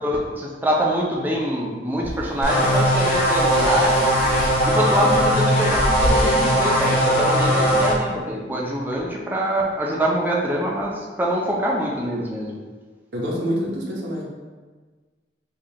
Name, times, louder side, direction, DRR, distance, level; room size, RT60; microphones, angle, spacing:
voice 1, 0.0-4.2 4.7-12.6, right 1 dB, 10° right, -2 dB, 0.4 m, -24 dB
sound 1, 2.0-7.7, equal, 70° left, 1.0 m, -30 dB
sound 2, 2.4-7.9, equal, 55° left, 0.7 m, -19 dB
voice 2, 13.1-14.2, equal, 80° right, -3 dB, 0.7 m, -26 dB
4.9 x 2.3 x 2.7 m, 1.4 s
head